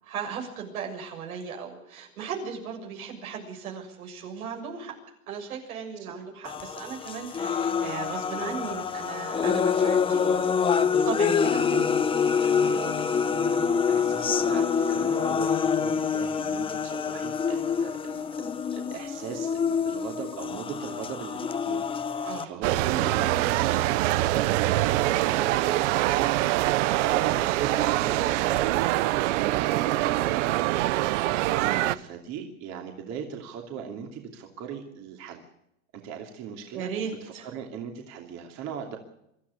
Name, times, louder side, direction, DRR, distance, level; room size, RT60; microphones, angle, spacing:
voice 1, 0.0-4.9 5.3-10.4 11.0-11.6 22.3-22.5 31.6-31.9 36.7-37.5, right 6 dB, 80° right, 2 dB, 7.1 m, -36 dB
sound 1, 6.4-22.4, left 6 dB, 10° left, 0.8 m, -26 dB
voice 2, 11.5-11.9 12.4-31.3 31.9-35.4 35.9-36.9 37.2-39.0, right 7 dB, 40° right, 2 dB, 2.8 m, -39 dB
sound 2, 22.6-31.9, right 16 dB, 55° right, 1.0 m, -24 dB
24.5 x 13.5 x 8.4 m, 0.81 s
supercardioid pair, 135°, 42 cm